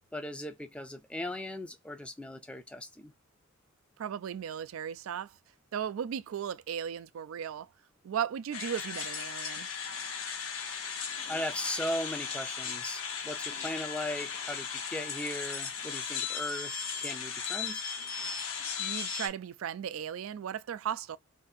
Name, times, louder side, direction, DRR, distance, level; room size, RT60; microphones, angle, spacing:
voice 1, 0.1-3.1 11.3-17.8, left 1 dB, 5° left, 0.4 m, -38 dB
voice 2, 4.0-5.3 5.7-7.7 8.0-9.7 18.8-21.2, right 8 dB, 75° right, 0.3 m, -36 dB
sound 1, 8.5-19.3, left 6 dB, 80° left, 0.8 m, -37 dB
2.7 x 2.5 x 4.0 m
head